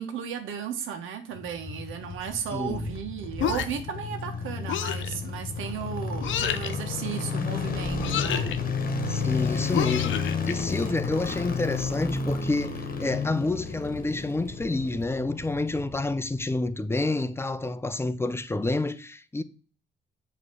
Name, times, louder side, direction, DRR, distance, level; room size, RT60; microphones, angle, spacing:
voice 1, 0.0-8.5 10.7-11.0, right 8 dB, 85° right, 1.3 m, -35 dB
sound 1, 1.4-16.6 16.8-16.9, left 5 dB, 45° left, 1.3 m, -32 dB
Thunder, 2.1-4.3 4.6-9.4 10.5-13.1, right 1 dB, 20° right, 2.2 m, -46 dB
voice 2, 2.5-2.9 9.1-19.4, left 2 dB, 10° left, 0.6 m, -29 dB
sound 2, 3.4-3.9 4.7-5.1 6.2-6.7 8.0-8.6 9.7-10.5, left 9 dB, 75° left, 0.8 m, -29 dB
7.3 x 3.2 x 6.2 m
cardioid pair, 90°, 20 cm